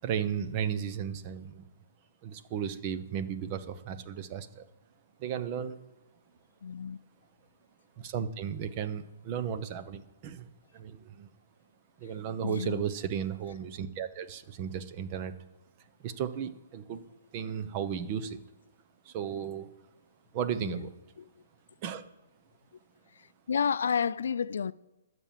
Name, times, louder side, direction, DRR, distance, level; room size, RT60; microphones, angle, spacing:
voice 1, 0.0-1.6 2.2-4.6 5.2-5.8 8.0-10.5 10.7-11.3 12.0-15.3 16.0-17.1 17.3-18.4 19.1-19.7 20.3-20.9 21.8-22.0, right 8 dB, 35° right, 0.8 m, -34 dB
voice 2, 6.6-7.0 12.4-12.8 20.6-20.9 21.2-21.3 23.1-24.7, left 6 dB, 75° left, 0.4 m, -31 dB
12.5 x 6.1 x 7.5 m
hypercardioid pair, 145°, 0 cm